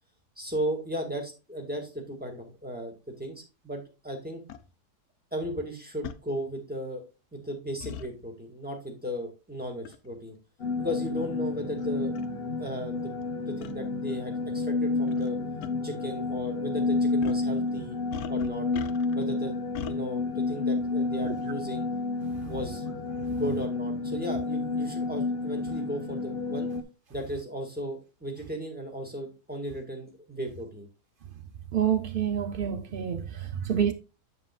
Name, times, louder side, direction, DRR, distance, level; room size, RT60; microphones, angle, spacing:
voice 1, 0.4-4.4 5.3-7.0 7.3-10.4 10.8-12.2 12.6-13.1 13.4-15.4 15.8-18.0 18.3-18.7 19.1-21.9 22.4-22.8 23.3-26.7 27.1-30.9 32.5-32.6 33.7-33.8, equal, 5° right, 1.8 m, -35 dB
sound 1, 4.5-4.6 6.0-6.2 7.8-8.1 9.8-10.1 10.9-11.0 11.8-11.9 12.1-12.3 13.6-13.7 15.1-15.3 15.6-15.7 17.2-17.5 18.1-19.2 19.7-20.0, left 9 dB, 70° left, 1.1 m, -39 dB
sound 2, 10.6-26.8, left 3 dB, 40° left, 1.1 m, -30 dB
voice 2, 31.7-33.9, right 9 dB, 80° right, 0.4 m, -28 dB
8.0 x 7.4 x 2.4 m
omnidirectional pair, 1.7 m